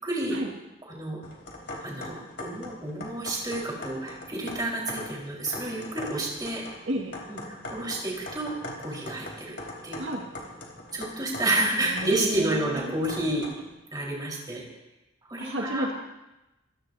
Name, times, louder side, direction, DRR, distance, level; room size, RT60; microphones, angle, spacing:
voice 1, 0.0-0.4 0.8-1.2 1.8-6.6 7.3-8.5 8.8-9.6 9.8-10.1 10.9-13.5 13.9-14.6 15.2-15.9, right 2 dB, 20° right, -3 dB, 4.5 m, -30 dB
sound 1, 1.2-13.7, left 1 dB, 55° left, 3.3 m, -41 dB
voice 2, 6.9-7.2 10.0-10.3 11.8-12.9 15.4-15.9, right 1 dB, 75° right, 0 dB, 2.1 m, -32 dB
25.5 x 16.0 x 2.8 m, 0.98 s
head